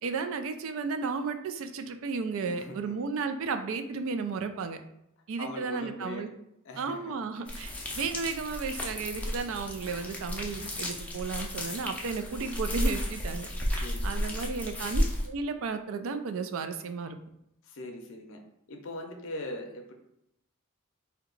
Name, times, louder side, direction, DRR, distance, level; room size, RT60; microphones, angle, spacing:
voice 1, 0.0-4.8 5.3-6.3 6.8-17.2, right 4 dB, 65° right, 8 dB, 0.4 m, -34 dB
voice 2, 2.4-3.0 5.4-6.3 6.7-7.1 7.5-7.6 13.7-14.5 17.6-18.4 18.7-19.9, left 1 dB, 65° left, 3 dB, 0.6 m, -41 dB
sound 1, 7.5-15.3, left 1 dB, 5° left, 0.4 m, -33 dB
2.8 x 2.2 x 3.8 m, 0.80 s
head